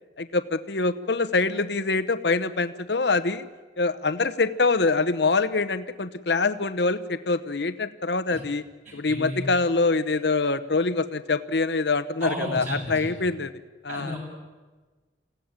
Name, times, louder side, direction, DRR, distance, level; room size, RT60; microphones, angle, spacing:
voice 1, 0.2-3.5 3.8-8.6 8.9-13.5 13.8-14.2, left 3 dB, 65° left, 12 dB, 1.0 m, -25 dB
voice 2, 8.8-9.5 12.2-13.2 13.9-14.2, equal, 40° right, -2 dB, 7.5 m, -33 dB
26.0 x 16.5 x 9.0 m, 1.3 s
head